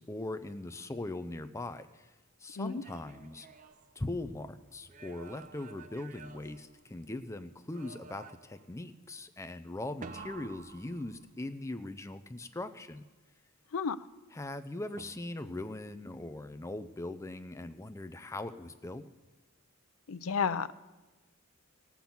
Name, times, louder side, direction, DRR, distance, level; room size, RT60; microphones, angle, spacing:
voice 1, 0.0-2.1 2.4-3.5 4.0-13.0 14.3-19.0, left 2 dB, 15° left, 10 dB, 0.5 m, -40 dB
sound 1, 2.5-4.4 4.8-7.3 7.7-8.7 10.0-11.6 15.0-15.6, right 4 dB, 35° right, 0.5 m, -51 dB
voice 2, 20.1-20.7, left 6 dB, 85° left, 14 dB, 0.5 m, -31 dB
17.5 x 6.0 x 7.1 m, 1.2 s
head